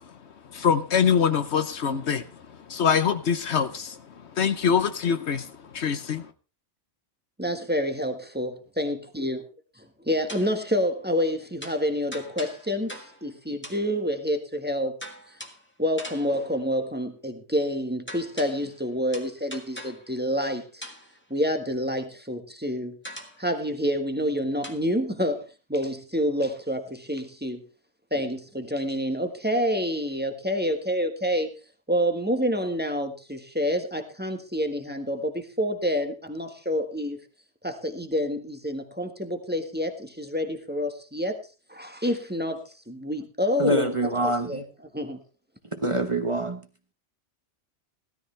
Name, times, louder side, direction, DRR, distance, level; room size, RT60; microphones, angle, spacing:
voice 1, 0.5-2.3 2.7-4.0 4.3-6.3, left 7 dB, 65° left, 1.2 m, -24 dB
voice 2, 7.4-9.4 10.0-12.9 13.2-15.0 15.8-20.9 21.3-23.0 23.4-27.6 28.1-31.5 31.9-37.2 37.6-41.4 41.7-43.9 44.2-44.6 44.9-45.2, equal, 10° right, 1.5 m, -28 dB
sound 1, 10.3-10.7 11.6-13.3 13.6-13.9 15.0-15.7 16.0-16.5 18.1-18.8 19.1-20.1 20.8-21.2 23.0-23.5 24.6-24.8, equal, 10° left, 1.6 m, -42 dB
voice 3, 43.6-44.6 45.7-46.6, right 1 dB, 25° right, 1.2 m, -25 dB
16.5 x 13.5 x 3.3 m
omnidirectional pair, 1.2 m